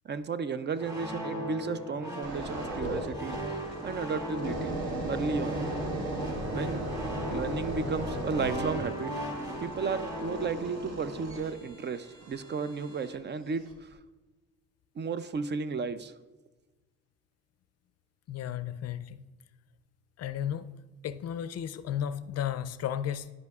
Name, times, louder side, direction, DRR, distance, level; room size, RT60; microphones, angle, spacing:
voice 1, 0.0-4.8 5.1-5.6 6.5-6.9 7.3-14.0 15.0-16.1, right 5 dB, 35° right, 13 dB, 0.4 m, -34 dB
sound 1, 0.8-11.7, equal, 10° right, 2.2 m, -38 dB
sound 2, 2.2-13.2 13.7-13.9, right 1 dB, 60° right, 1.5 m, -37 dB
voice 2, 18.3-19.2 20.2-20.7 21.0-23.3, left 9 dB, 55° left, 13 dB, 0.4 m, -34 dB
12.0 x 5.3 x 2.4 m, 1.2 s
cardioid pair, 90°, 30 cm